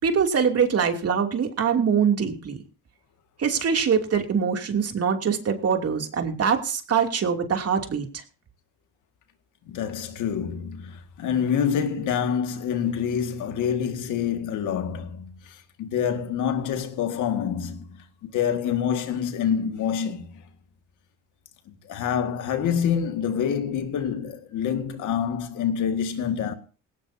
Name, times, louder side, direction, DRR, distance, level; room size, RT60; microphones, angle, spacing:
voice 1, 0.0-2.6 3.4-8.2, right 6 dB, 55° right, 2.9 m, -23 dB
voice 2, 9.7-20.4 21.7-26.5, left 8 dB, 85° left, 2.0 m, -27 dB
18.5 x 18.0 x 2.8 m
cardioid pair, 90°, 30 cm